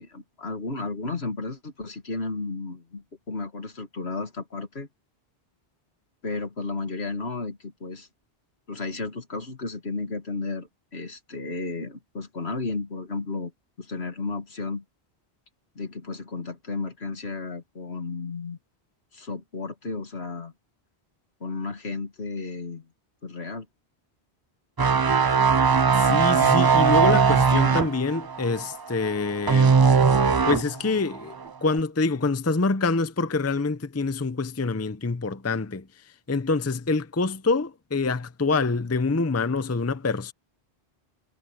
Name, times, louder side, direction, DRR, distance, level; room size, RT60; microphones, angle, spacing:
voice 1, 0.0-4.9 6.2-8.1 8.7-13.5 13.8-14.8 15.8-18.6 19.1-20.5 21.4-22.9 23.2-23.7, left 3 dB, 75° left, 2.5 m, -33 dB
sound 1, 24.8-30.8 31.1-31.4, right 5 dB, 40° right, 0.3 m, -19 dB
voice 2, 26.0-29.8 30.5-31.3 31.6-35.9 36.3-40.3, left 3 dB, 15° left, 0.6 m, -26 dB
omnidirectional pair, 1.1 m